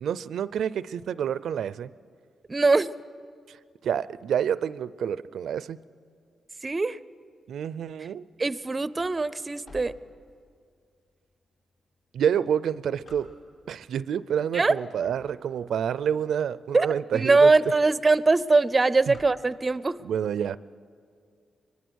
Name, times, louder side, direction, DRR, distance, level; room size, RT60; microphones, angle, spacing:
voice 1, 0.0-1.9 3.8-5.8 7.5-8.2 12.1-13.3 13.7-17.5 19.1-19.2 20.0-20.6, right 8 dB, 80° right, 17 dB, 0.5 m, -28 dB
voice 2, 2.5-2.9 6.6-7.0 8.4-9.9 14.5-14.7 16.7-16.9 17.1-20.0, right 3 dB, 25° right, 17 dB, 0.5 m, -22 dB
sound 1, 8.6-10.7 11.3-11.4 12.1-13.8 14.4-14.6 14.9-16.5 17.0-17.1 17.3-17.4 17.7-18.0 18.3-19.9, left 2 dB, 65° left, 5.1 m, -52 dB
22.5 x 22.0 x 6.3 m, 2.2 s
cardioid pair, 95°, 0 cm